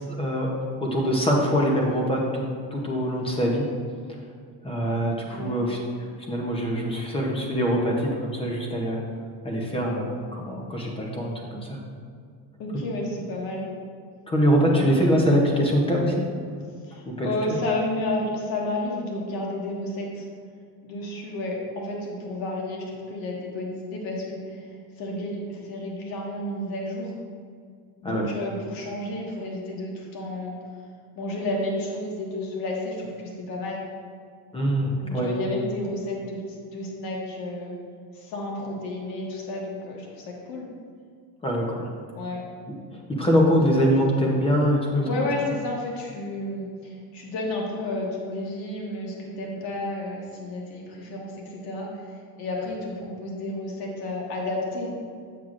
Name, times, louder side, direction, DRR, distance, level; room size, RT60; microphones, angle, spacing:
voice 1, 0.1-0.5 0.8-2.4 2.7-3.7 4.6-5.8 6.3-9.0 9.4-11.8 14.3-16.3 17.1-17.3 28.0-28.3 34.5-35.3 41.4-41.9 43.1-45.3, equal, 15° left, -1 dB, 0.7 m, -23 dB
voice 2, 12.6-13.7 14.6-14.9 16.9-20.2 20.8-24.7 25.0-27.1 28.0-30.5 31.1-33.8 35.0-36.4 36.7-37.7 38.1-40.6 42.1-42.4 45.0-52.0 52.4-54.9, left 1 dB, 60° left, -2 dB, 1.5 m, -31 dB
7.7 x 7.4 x 2.5 m, 2.1 s
cardioid pair, 170°, 41 cm